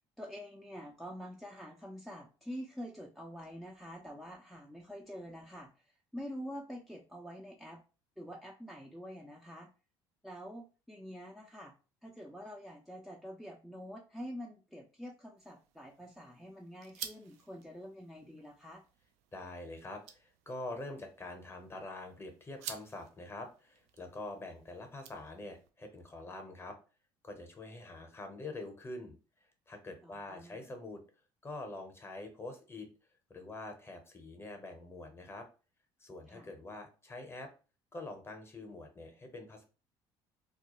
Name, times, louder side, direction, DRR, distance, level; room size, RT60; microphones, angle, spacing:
voice 1, 0.2-7.8 8.2-9.7 10.2-11.7 12.0-18.8 30.0-30.6 36.3-36.5, equal, ahead, -1 dB, 0.5 m, -46 dB
sound 1, 15.4-25.7, right 9 dB, 70° right, 0.4 m, -52 dB
voice 2, 19.3-26.8 27.2-29.2 29.7-31.0 31.4-32.9 33.3-35.5 36.0-37.5 37.9-39.6, left 2 dB, 20° left, 5 dB, 0.8 m, -45 dB
2.3 x 2.1 x 2.9 m, 0.34 s
supercardioid pair, 75°, 12 cm